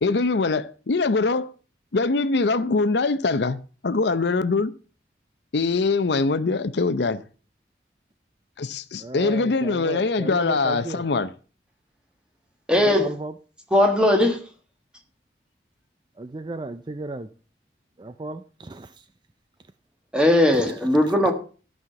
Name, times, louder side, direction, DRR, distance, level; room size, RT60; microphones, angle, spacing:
voice 1, 0.0-1.5 1.9-4.7 5.5-7.2 8.6-11.3, left 3 dB, 75° left, 0.6 m, -23 dB
voice 2, 9.0-11.0 12.8-13.3 16.2-17.3 18.0-18.9, right 2 dB, 25° right, 0.4 m, -34 dB
voice 3, 12.7-13.1 13.7-14.4 20.1-21.3, left 1 dB, 5° right, 1.6 m, -18 dB
13.5 x 5.7 x 5.7 m
head